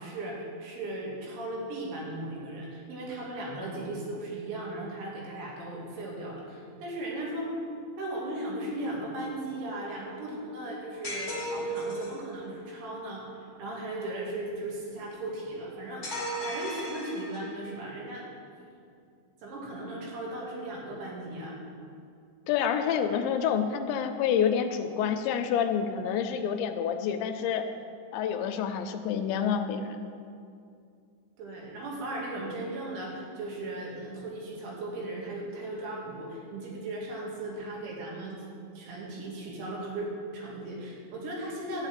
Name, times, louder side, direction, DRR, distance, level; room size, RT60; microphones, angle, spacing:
voice 1, 0.0-7.5 8.0-16.1 16.4-18.3 19.4-21.6 31.4-38.4 38.7-41.9, right 1 dB, 80° right, -3 dB, 4.7 m, -37 dB
sound 1, 11.0-12.2 16.0-17.6, right 1 dB, 20° left, 2.3 m, -35 dB
voice 2, 22.5-27.6 28.1-30.0, left 8 dB, 80° left, 7 dB, 2.8 m, -28 dB
12.0 x 5.7 x 9.0 m, 2.4 s
omnidirectional pair, 5.3 m